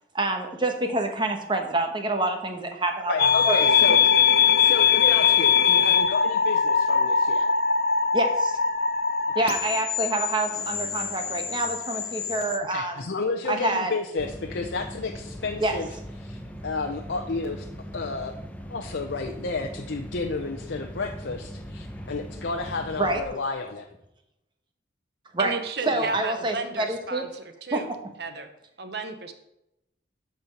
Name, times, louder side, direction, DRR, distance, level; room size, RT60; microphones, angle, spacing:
voice 1, 0.1-3.6 8.1-8.6 9.3-13.0 13.5-13.9 15.6-15.8 23.0-23.2 25.3-27.3 27.7-27.8, right 2 dB, 25° right, 4 dB, 1.1 m, -27 dB
voice 2, 3.1-4.0 4.6-7.5 9.3-9.5 12.7-15.9 16.2-16.4 16.6-17.7 17.9-18.3 18.7-23.9 25.9-26.1, left 3 dB, 75° left, 3 dB, 0.7 m, -31 dB
sound 1, 3.2-12.6, left 7 dB, 55° left, 0.9 m, -22 dB
sound 2, 14.2-23.2, equal, 10° left, 0.7 m, -40 dB
voice 3, 25.4-27.9 28.2-28.5 28.8-29.3, right 3 dB, 60° right, 8 dB, 0.9 m, -33 dB
12.5 x 4.4 x 5.2 m, 0.86 s
head